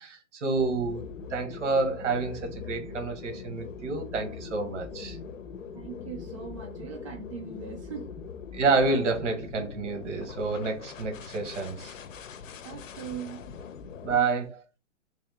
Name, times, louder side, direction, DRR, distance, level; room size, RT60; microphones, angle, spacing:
voice 1, 0.0-5.2 8.5-11.9 14.0-14.6, right 4 dB, 65° right, 1.3 m, -29 dB
sound 1, 0.6-14.2, left 6 dB, 85° left, 0.7 m, -42 dB
voice 2, 5.7-8.1 12.6-13.4 14.1-14.5, right 7 dB, 25° right, 0.5 m, -40 dB
3.5 x 2.7 x 3.5 m
hypercardioid pair, 165°, 38 cm